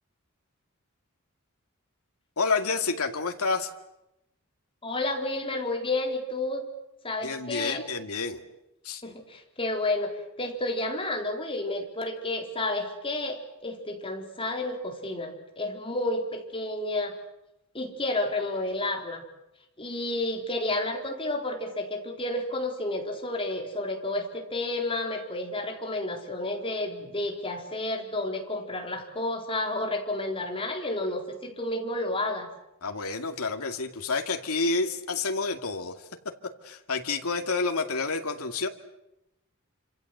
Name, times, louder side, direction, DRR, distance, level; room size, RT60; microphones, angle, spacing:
voice 1, 2.4-3.7 7.2-8.4 8.8-9.0 32.8-36.0 36.6-38.7, left 4 dB, 85° left, 5 dB, 2.3 m, -29 dB
voice 2, 4.8-6.7 7.0-7.8 9.0-10.1 10.4-17.1 17.7-19.2 19.8-32.5, left 2 dB, 25° left, 2 dB, 4.3 m, -31 dB
27.5 x 26.5 x 8.0 m, 0.88 s
head